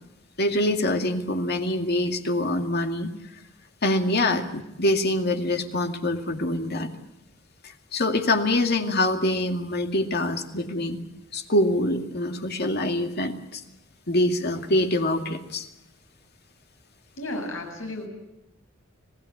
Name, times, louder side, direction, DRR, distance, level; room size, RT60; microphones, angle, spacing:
voice 1, 0.4-3.1 3.8-6.9 7.6-11.0 11.3-13.6 14.1-15.7, left 1 dB, 55° left, 5 dB, 2.3 m, -25 dB
voice 2, 17.2-18.1, left 1 dB, 75° left, 2 dB, 7.8 m, -33 dB
26.5 x 18.5 x 8.5 m, 0.91 s
head